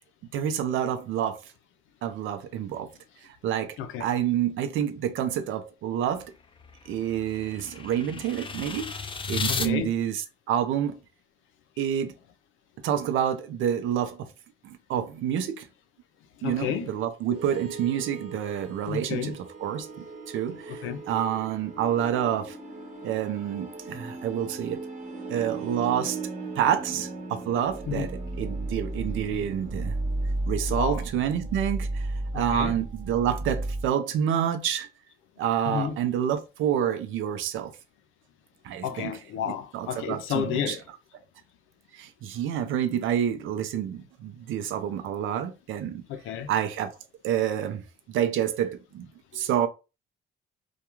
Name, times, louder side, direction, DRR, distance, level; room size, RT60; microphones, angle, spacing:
voice 1, 0.3-1.4 2.0-2.9 3.2-6.3 6.9-10.2 10.5-11.0 11.8-12.2 12.8-14.3 14.6-15.7 16.4-22.6 23.0-24.8 25.3-26.2 26.6-28.1 28.4-30.0 30.5-34.9 35.4-37.7 38.6-39.1 39.7-40.8 41.9-46.0 46.5-47.0 47.2-49.7, right 9 dB, 85° right, 0.5 m, -28 dB
sound 1, 6.1-9.7, left 5 dB, 25° left, 0.4 m, -34 dB
voice 2, 9.5-9.9 16.4-17.0 18.9-19.4 20.7-21.0 27.9-28.1 30.7-31.0 32.3-32.8 35.7-36.0 38.8-40.8 46.1-46.5 49.3-49.5, left 8 dB, 85° left, 0.5 m, -31 dB
sound 2, 17.3-33.9, right 2 dB, 35° right, 1.0 m, -35 dB
2.3 x 2.2 x 3.0 m
cardioid pair, 90°, 20 cm